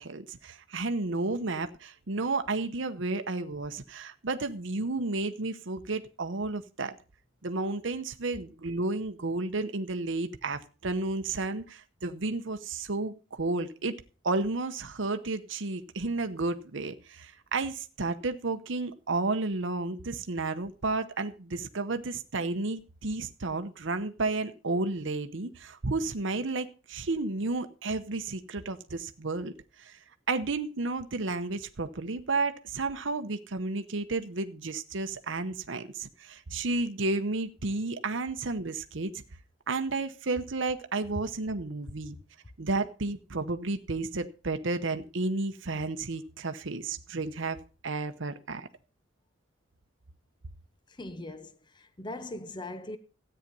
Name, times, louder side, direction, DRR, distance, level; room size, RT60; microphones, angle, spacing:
voice 1, 0.0-6.9 7.4-13.9 14.2-30.0 30.3-39.1 39.7-42.2 42.6-47.6 47.8-48.7, right 3 dB, 65° right, 0.9 m, -32 dB
voice 2, 50.9-53.0, left 2 dB, 20° left, 0.7 m, -40 dB
13.5 x 8.9 x 5.4 m
head